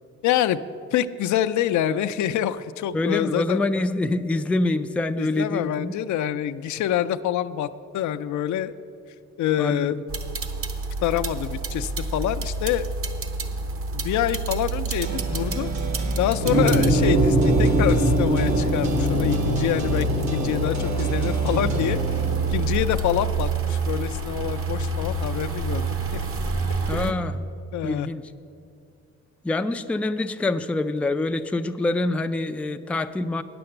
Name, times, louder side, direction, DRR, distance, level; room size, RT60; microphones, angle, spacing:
voice 1, 0.2-0.6 0.9-3.6 5.2-7.7 7.9-8.7 9.4-10.0 11.0-12.9 13.9-15.7 16.2-22.0 22.5-26.2 26.9-27.2 27.7-28.1, left 11 dB, 70° left, 12 dB, 0.5 m, -26 dB
voice 2, 2.9-6.0 9.6-10.0 26.9-27.4 27.8-28.3 29.4-33.4, left 2 dB, 5° left, 8 dB, 0.3 m, -25 dB
sound 1, 10.1-27.1, right 3 dB, 45° right, 1.0 m, -28 dB
sound 2, 15.0-22.6, right 2 dB, 65° right, 1.6 m, -35 dB
sound 3, 16.4-22.6, right 1 dB, 85° right, 2.7 m, -23 dB
9.3 x 6.9 x 7.7 m, 2.5 s
cardioid pair, 90°, 30 cm